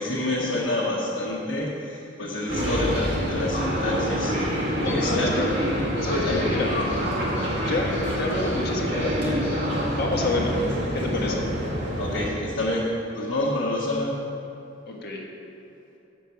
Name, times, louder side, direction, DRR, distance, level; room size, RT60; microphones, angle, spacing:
voice 1, 0.0-4.4 4.8-5.3 6.2-6.4 12.0-14.2, left 1 dB, 75° left, -7 dB, 1.3 m, -28 dB
sound 1, 2.5-12.3, equal, 65° right, 2.0 m, -26 dB
voice 2, 4.8-5.5 6.0-6.7 7.6-9.6 9.9-10.6 10.9-11.4 14.9-15.2, left 2 dB, 55° left, -1 dB, 1.3 m, -28 dB
8.1 x 6.6 x 5.7 m, 2.8 s
head